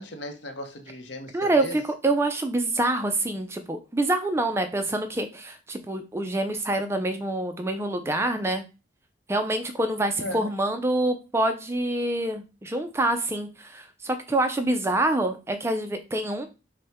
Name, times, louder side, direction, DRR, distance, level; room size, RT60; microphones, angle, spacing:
voice 1, 0.0-1.8 10.2-10.5, left 1 dB, 65° left, 0.7 m, -36 dB
voice 2, 1.3-8.6 9.3-16.5, right 2 dB, 15° right, 0.3 m, -26 dB
5.4 x 2.1 x 3.4 m
head